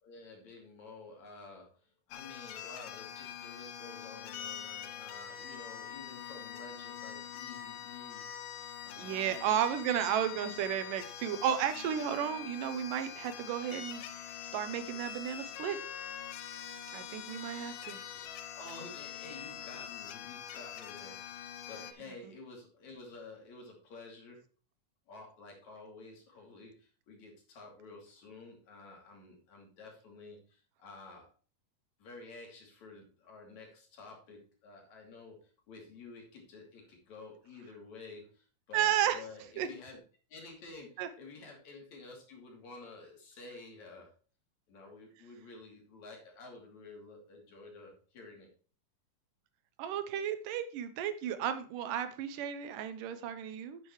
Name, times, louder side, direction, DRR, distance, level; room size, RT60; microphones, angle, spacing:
voice 1, 0.0-8.3 8.8-9.3 18.2-18.3 18.6-24.4 25.1-31.3 32.0-40.0 40.3-40.9 41.2-44.1 44.7-48.5, left 3 dB, 60° left, 0 dB, 4.0 m, -51 dB
sound 1, 2.1-21.9, left 9 dB, 90° left, 2.6 m, -44 dB
voice 2, 9.0-14.0 14.5-15.8 16.9-18.0 22.0-22.1 38.7-39.2 39.6-39.7 41.0-41.1 49.8-53.8, right 9 dB, 80° right, 10 dB, 2.4 m, -33 dB
10.0 x 8.2 x 3.1 m, 0.39 s
omnidirectional pair, 3.8 m